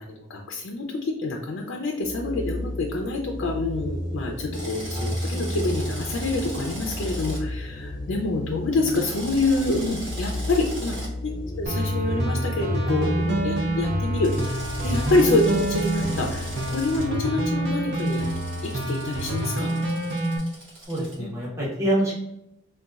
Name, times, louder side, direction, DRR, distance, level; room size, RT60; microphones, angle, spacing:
voice 1, 0.0-10.9 11.2-18.3 18.6-19.7 21.2-21.3, left 2 dB, 70° left, 1 dB, 0.4 m, -27 dB
sound 1, 2.0-19.4, left 1 dB, 20° left, 0.5 m, -33 dB
Drill, 4.5-7.4 8.8-11.1 14.2-17.0 18.0-21.1, right 1 dB, 70° right, 1.2 m, -39 dB
sound 2, 11.7-20.4, right 1 dB, 55° right, 0.5 m, -27 dB
voice 2, 20.9-22.1, right 1 dB, 15° right, -8 dB, 1.0 m, -26 dB
3.9 x 2.2 x 2.3 m, 0.83 s
head